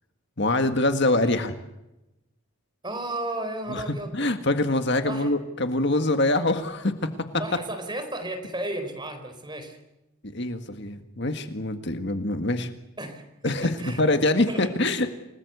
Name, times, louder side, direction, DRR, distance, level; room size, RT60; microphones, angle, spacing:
voice 1, 0.4-1.5 3.7-3.8 4.1-7.1 10.2-12.7 13.4-15.1, left 2 dB, 50° left, 8 dB, 1.8 m, -24 dB
voice 2, 2.8-4.2 5.0-5.3 7.4-9.8 13.0-13.2 13.8-14.0 14.5-15.0, right 1 dB, 20° right, 6 dB, 4.4 m, -33 dB
29.0 x 19.5 x 8.1 m, 0.92 s
head